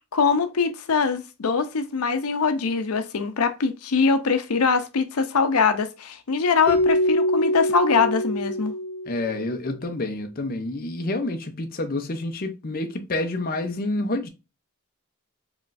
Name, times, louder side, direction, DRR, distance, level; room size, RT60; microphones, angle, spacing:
voice 1, 0.1-8.7, left 5 dB, 80° left, 0.6 m, -23 dB
Keyboard (musical), 6.7-9.5, left 1 dB, 10° right, 1.0 m, -24 dB
voice 2, 9.1-14.3, left 2 dB, 40° left, 0.6 m, -28 dB
4.8 x 3.1 x 2.5 m
head